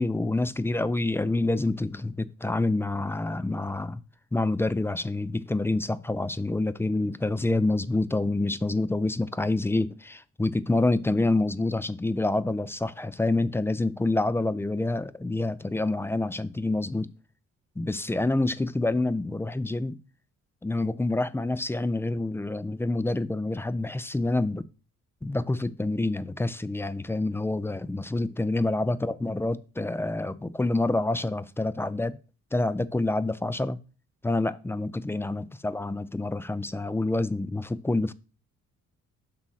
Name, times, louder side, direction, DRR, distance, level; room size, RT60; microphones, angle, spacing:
voice 1, 0.0-4.0 4.3-17.1 17.8-20.0 20.6-24.6 25.2-32.2 32.5-33.8 34.2-38.1, left 2 dB, 10° left, 0.3 m, -27 dB
6.1 x 3.7 x 5.6 m
cardioid pair, 90°, 30 cm